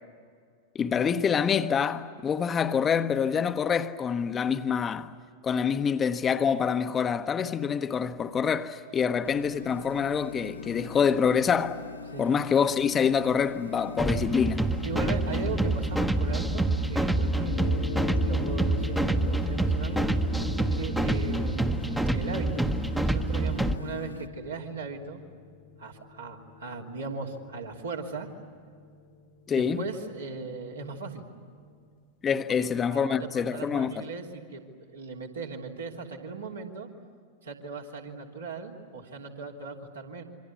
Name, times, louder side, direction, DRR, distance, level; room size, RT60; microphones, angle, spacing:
voice 1, 0.7-5.1 5.4-11.8 12.2-14.7 29.5-29.8 32.2-34.0, left 7 dB, 20° left, 0.9 m, -26 dB
sound 1, 9.2-24.3, left 5 dB, 85° left, 1.4 m, -42 dB
sound 2, 14.0-23.8, right 2 dB, 5° right, 1.0 m, -27 dB
voice 2, 14.8-18.0 18.2-22.6 22.9-25.2 25.8-28.3 29.5-31.2 32.6-36.9 37.4-40.2, right 4 dB, 70° right, 3.2 m, -38 dB
sound 3, 17.4-32.0, left 11 dB, 55° left, 1.3 m, -44 dB
27.5 x 25.0 x 8.5 m
figure-of-eight pair, 90°, 0 cm